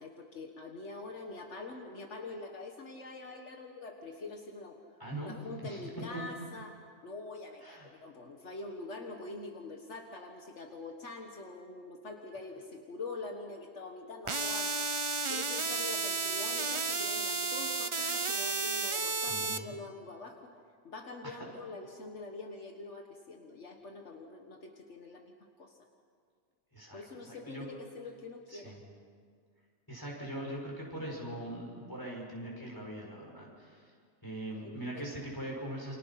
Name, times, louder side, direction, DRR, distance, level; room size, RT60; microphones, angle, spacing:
voice 1, 0.0-4.8 5.2-6.8 7.0-14.8 15.3-20.5 20.8-25.3 25.6-25.8 26.9-28.8 34.6-35.0, left 3 dB, 75° left, 3 dB, 1.9 m, -45 dB
voice 2, 5.0-5.3 5.6-5.9 6.1-6.2 7.6-7.9 19.3-19.7 21.2-21.4 26.7-27.7 28.5-28.8 29.9-33.9 34.2-36.0, right 1 dB, 15° left, -2 dB, 6.0 m, -41 dB
sound 1, 14.3-19.6, right 4 dB, 30° right, 0.7 m, -32 dB
29.0 x 26.5 x 5.9 m, 2.1 s
omnidirectional pair, 1.2 m